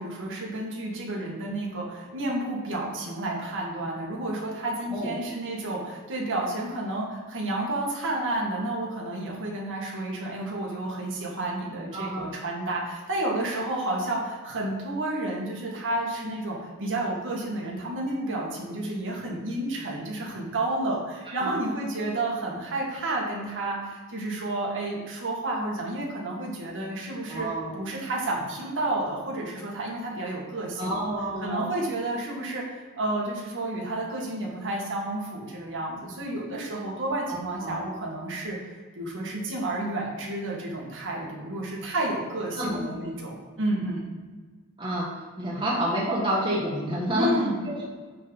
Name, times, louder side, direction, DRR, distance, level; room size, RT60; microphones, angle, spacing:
voice 1, 0.0-27.5 27.7-31.1 31.4-44.1 47.1-47.9, right 1 dB, 60° right, -3 dB, 2.0 m, -31 dB
voice 2, 11.9-12.3 21.4-21.5 27.3-27.7 30.8-31.7 37.3-37.8 42.6-42.8 44.8-45.1 45.4-47.3 47.7-47.9, right 1 dB, 20° right, -5 dB, 1.4 m, -29 dB
9.2 x 4.0 x 5.4 m, 1.4 s
head